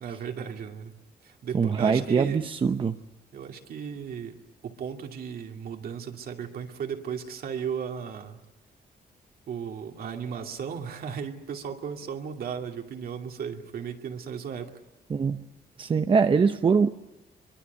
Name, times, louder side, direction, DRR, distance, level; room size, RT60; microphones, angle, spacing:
voice 1, 0.0-2.5 3.3-4.4 4.6-8.4 9.5-14.8, right 7 dB, 65° right, 4 dB, 2.6 m, -35 dB
voice 2, 1.5-3.0 15.1-15.4 15.8-16.9, right 5 dB, 30° right, 8 dB, 0.8 m, -23 dB
24.0 x 23.5 x 8.2 m, 1.0 s
cardioid pair, 145°, 17 cm